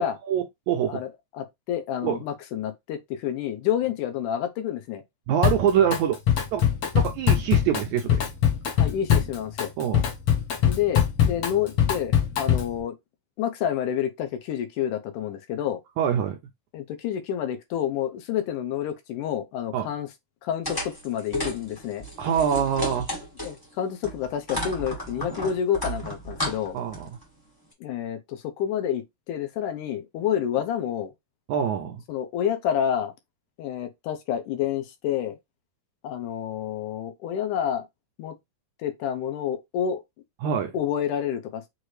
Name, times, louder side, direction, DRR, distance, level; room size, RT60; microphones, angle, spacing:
voice 1, 0.0-1.0 2.0-2.2 5.3-6.2 6.5-6.6 6.9-8.2 9.8-10.1 16.0-16.4 19.7-19.9 22.2-23.1 26.7-27.1 31.5-32.0 40.4-40.8, right 8 dB, 80° right, 1.7 m, -25 dB
voice 2, 0.9-5.0 8.8-9.7 10.6-13.0 13.4-15.8 16.7-20.1 20.4-22.0 23.4-26.8 27.8-31.1 32.1-33.1 33.6-35.4 36.0-37.9 38.2-38.4 38.8-40.0 40.7-41.6, left 9 dB, 75° left, 2.1 m, -29 dB
Drum kit, 5.4-6.0 6.3-12.8, left 9 dB, 55° left, 2.0 m, -22 dB
sound 1, 20.6-23.6 24.0-27.2, equal, 15° left, 0.8 m, -33 dB
6.4 x 2.5 x 3.2 m
omnidirectional pair, 3.9 m